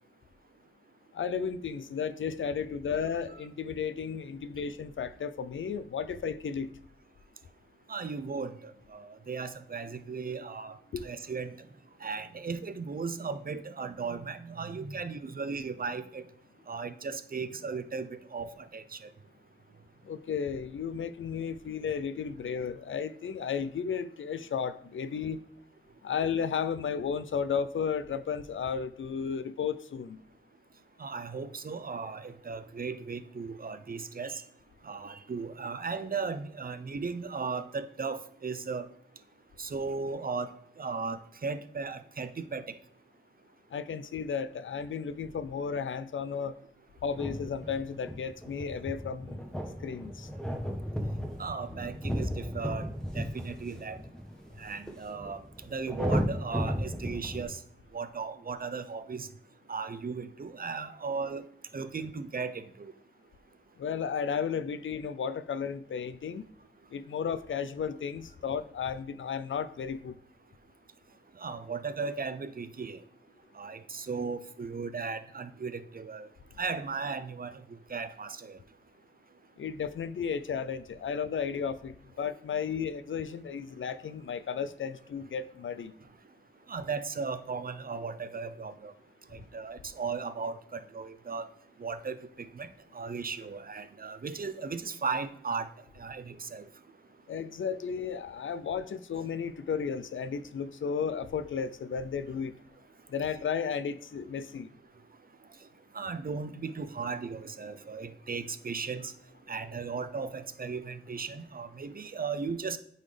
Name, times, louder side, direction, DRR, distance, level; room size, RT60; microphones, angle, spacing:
voice 1, 1.1-6.7 10.9-11.0 20.0-25.4 26.0-30.2 43.7-46.5 47.0-49.4 49.8-50.3 63.8-66.4 66.9-70.2 79.6-85.9 97.3-102.5 103.1-104.7, left 6 dB, 90° left, 14 dB, 0.4 m, -33 dB
voice 2, 7.9-10.8 11.0-11.6 12.0-16.2 16.7-19.1 31.0-34.4 34.8-38.9 39.6-42.7 51.4-52.9 53.1-54.0 54.6-57.6 57.9-59.3 59.7-61.4 61.7-62.9 71.4-73.0 73.5-76.3 76.6-77.6 77.9-78.6 86.7-88.9 89.3-91.5 91.8-95.7 96.0-96.7 105.9-109.1 109.5-112.8, right 5 dB, 50° right, 12 dB, 0.5 m, -36 dB
sound 1, 47.1-57.4, equal, 5° left, 1.0 m, -35 dB
8.8 x 4.0 x 3.3 m, 0.70 s
wide cardioid pair, 80°, 20 cm